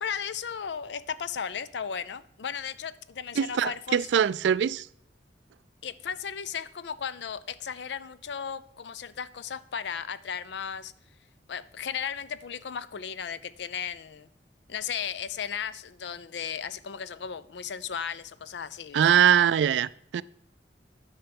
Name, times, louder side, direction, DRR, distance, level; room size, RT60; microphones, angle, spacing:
voice 1, 0.0-4.1 5.8-10.9 11.5-14.3 14.7-19.2, left 7 dB, 70° left, 0.5 m, -35 dB
voice 2, 3.4-4.8 18.9-20.2, right 8 dB, 80° right, 0.3 m, -22 dB
10.0 x 5.7 x 5.2 m
head